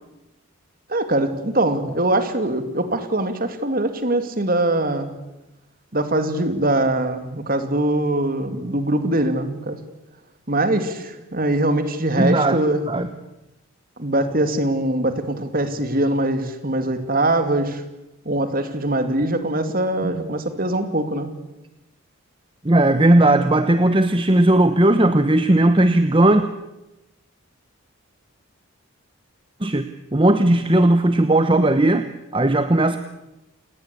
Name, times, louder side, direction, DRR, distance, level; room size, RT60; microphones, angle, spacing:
voice 1, 0.9-5.1 5.9-9.8 10.5-12.9 14.0-17.8 18.2-21.3, right 1 dB, 40° right, 9 dB, 2.7 m, -22 dB
voice 2, 12.2-12.6 12.9-13.1 20.0-20.1 22.6-26.4 29.6-29.9 30.1-33.0, right 1 dB, 25° right, 10 dB, 1.0 m, -17 dB
28.5 x 19.0 x 8.5 m, 0.96 s
head